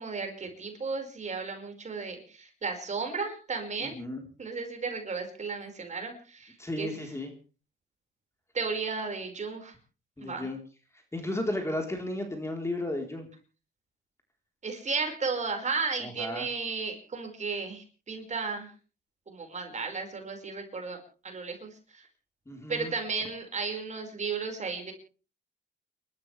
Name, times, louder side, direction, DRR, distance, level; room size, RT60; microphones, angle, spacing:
voice 1, 0.0-4.0 4.4-6.9 8.5-9.7 10.2-10.5 14.6-18.7 19.3-21.0 21.2-22.0 22.7-24.9, right 4 dB, 35° right, 4 dB, 5.2 m, -34 dB
voice 2, 3.8-4.2 6.6-7.3 10.2-10.6 11.1-13.3 16.0-16.5 22.5-22.9, left 1 dB, 15° left, 3 dB, 3.9 m, -34 dB
30.0 x 13.0 x 3.4 m, 0.36 s
cardioid pair, 90°, 20 cm